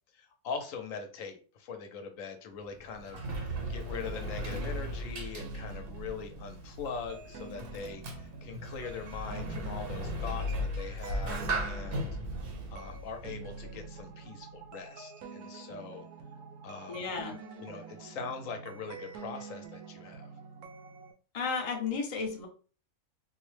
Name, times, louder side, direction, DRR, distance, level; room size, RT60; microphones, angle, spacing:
voice 1, 0.1-10.5 10.8-12.1 12.7-16.0 16.6-17.1 17.6-20.3, left 5 dB, 70° left, 6 dB, 0.9 m, -42 dB
Sliding door, 2.6-14.0, equal, 55° right, 0.7 m, -37 dB
sound 1, 5.4-21.1, right 5 dB, 80° right, 1.0 m, -47 dB
voice 2, 16.9-17.4 21.3-22.5, left 5 dB, 45° left, 1 dB, 0.4 m, -33 dB
4.0 x 2.1 x 3.1 m, 0.38 s
omnidirectional pair, 1.5 m